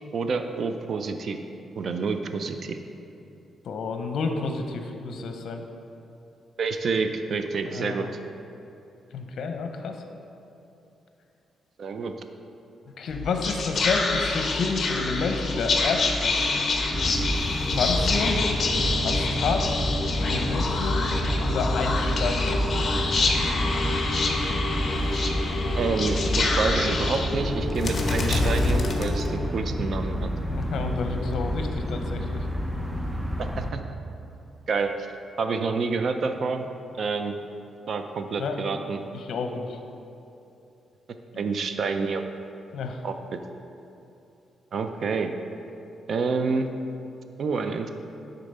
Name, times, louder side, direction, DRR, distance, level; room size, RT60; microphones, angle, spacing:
voice 1, 0.1-1.4 1.7-2.8 6.6-8.1 11.8-12.1 25.2-25.3 25.8-30.3 33.6-33.8 34.7-35.0 35.4-36.7 37.0-37.4 37.9-39.0 41.4-42.2 43.0-43.4 44.7-45.3 46.1-46.7 47.4-47.9, right 4 dB, 55° right, 7 dB, 0.5 m, -28 dB
voice 2, 3.6-5.6 7.6-8.1 9.1-10.0 13.0-16.7 17.6-18.4 19.0-19.7 20.2-21.1 21.4-22.6 30.5-32.5 38.4-38.8 39.1-39.8 41.3-41.4 42.7-43.0, left 4 dB, 70° left, 5 dB, 0.7 m, -30 dB
Whispering, 13.1-29.7, left 3 dB, 40° left, 0.9 m, -26 dB
sound 1, 16.9-33.7, equal, 10° right, 0.6 m, -29 dB
9.9 x 3.9 x 5.4 m, 2.8 s
cardioid pair, 130°, 0 cm